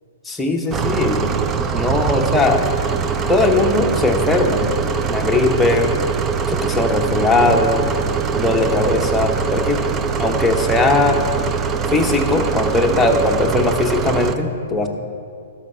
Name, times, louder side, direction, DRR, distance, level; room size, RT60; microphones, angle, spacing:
voice 1, 0.2-1.3 1.7-2.7 3.3-4.7 5.1-6.0 6.5-7.9 8.3-9.9 10.2-11.3 11.9-14.9, left 2 dB, 5° left, 1 dB, 1.0 m, -19 dB
sound 1, 0.7-14.4, right 6 dB, 20° right, 0.5 m, -22 dB
12.0 x 5.6 x 6.9 m, 2.4 s
figure-of-eight pair, 115°, 0 cm